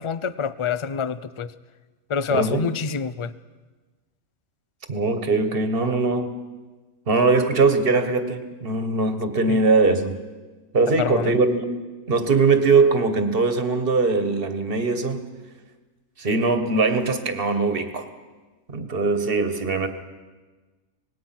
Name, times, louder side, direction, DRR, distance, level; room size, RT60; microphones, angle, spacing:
voice 1, 0.0-1.5 2.1-3.3 9.5-9.6 11.0-11.3, left 6 dB, 40° left, 15 dB, 0.4 m, -26 dB
voice 2, 2.3-2.7 4.9-6.4 7.1-10.2 10.7-11.7 12.1-15.2 16.2-18.1 18.7-19.9, right 3 dB, 40° right, 8 dB, 1.7 m, -21 dB
25.5 x 19.5 x 6.0 m, 1.3 s
omnidirectional pair, 1.5 m